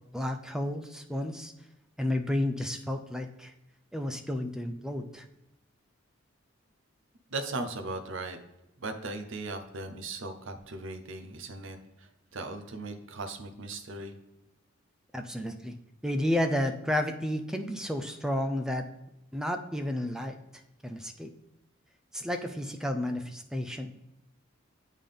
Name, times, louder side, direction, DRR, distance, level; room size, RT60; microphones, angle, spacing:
voice 1, 0.1-1.5 2.0-3.5 3.9-5.2 15.1-15.8 16.0-18.9 19.3-20.4 20.8-21.3 22.1-23.9, left 1 dB, 5° right, 6 dB, 0.4 m, -31 dB
voice 2, 7.3-8.4 8.8-14.2, right 2 dB, 70° right, 6 dB, 0.7 m, -38 dB
8.3 x 3.8 x 3.5 m, 0.91 s
head